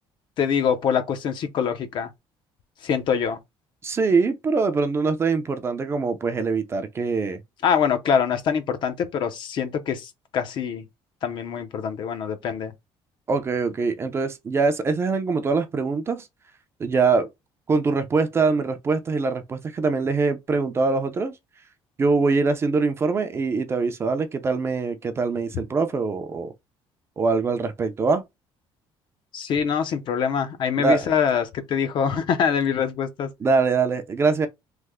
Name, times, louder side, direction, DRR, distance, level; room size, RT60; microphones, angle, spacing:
voice 1, 0.4-2.1 2.8-3.4 7.6-10.8 11.2-12.7 29.3-33.3, left 7 dB, 50° left, 0.6 m, -24 dB
voice 2, 3.8-7.4 13.3-16.3 16.8-17.3 17.7-21.3 22.0-26.5 27.2-28.2 30.8-31.1 33.4-34.5, right 4 dB, 25° right, 0.4 m, -23 dB
3.2 x 2.1 x 3.4 m
cardioid pair, 145°, 10 cm